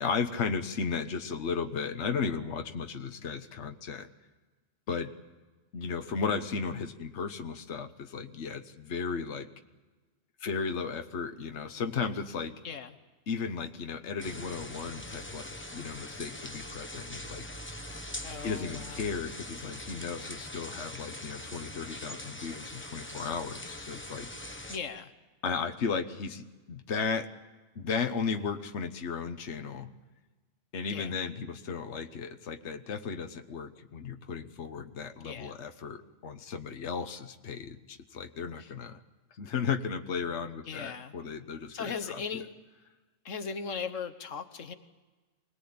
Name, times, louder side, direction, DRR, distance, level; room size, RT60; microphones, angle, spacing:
voice 1, 0.0-4.1 4.9-5.1 5.7-9.5 10.4-12.6 13.3-17.4 18.4-24.3 25.4-27.3 27.7-29.9 30.7-39.0 39.4-42.2, left 5 dB, 65° left, 7 dB, 1.4 m, -35 dB
sound 1, 14.2-24.8, left 1 dB, 10° left, 1.1 m, -42 dB
voice 2, 18.2-19.0 24.7-25.1 30.9-31.1 35.2-35.6 38.6-38.7 40.6-41.1 41.7-42.5 43.2-44.7, left 6 dB, 85° left, 10 dB, 1.5 m, -38 dB
25.0 x 19.5 x 8.7 m, 1.2 s
omnidirectional pair, 1.3 m